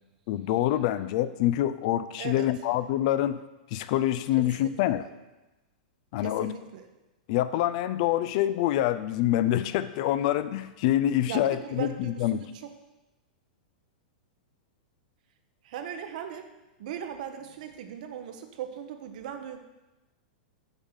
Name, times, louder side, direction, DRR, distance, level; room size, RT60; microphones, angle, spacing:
voice 1, 0.3-3.4 3.7-5.1 6.1-6.5 7.3-12.4, left 13 dB, 55° left, 14 dB, 0.4 m, -26 dB
voice 2, 4.6-5.1 6.2-6.9 11.3-12.7 15.6-16.5 16.8-19.6, right 8 dB, 60° right, 7 dB, 0.8 m, -38 dB
7.1 x 3.6 x 5.6 m, 1.0 s
hypercardioid pair, 130°, 5 cm